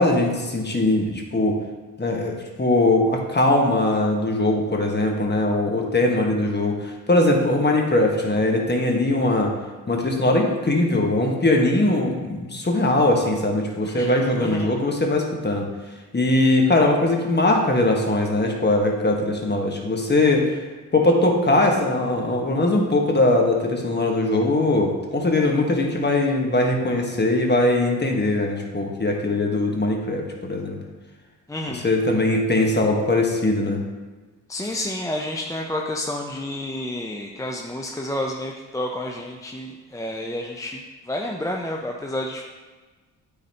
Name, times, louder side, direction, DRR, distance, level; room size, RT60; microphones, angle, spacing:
voice 1, 0.0-1.6 2.0-9.5 9.9-15.7 16.1-20.6 20.9-30.8 31.7-33.8, left 2 dB, 25° left, 1 dB, 1.3 m, -21 dB
voice 2, 14.4-14.7 31.5-31.9 34.5-40.8 41.1-42.4, left 1 dB, 10° left, 0 dB, 0.5 m, -30 dB
9.1 x 4.0 x 2.9 m, 1.3 s
supercardioid pair, 55°, 39 cm